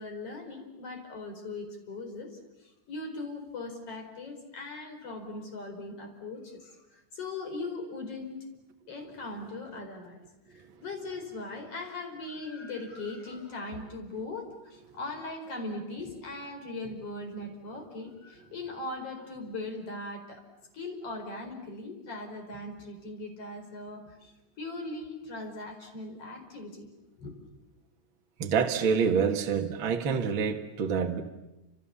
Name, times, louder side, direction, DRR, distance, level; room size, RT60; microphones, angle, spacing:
voice 1, 0.0-8.4 8.9-10.2 10.5-20.4 20.7-26.9 27.2-27.3, left 2 dB, 50° left, 5.6 m, -39 dB
voice 2, 28.4-31.2, right 6 dB, 45° right, 2.2 m, -27 dB
29.5 x 27.5 x 7.2 m
omnidirectional pair, 3.5 m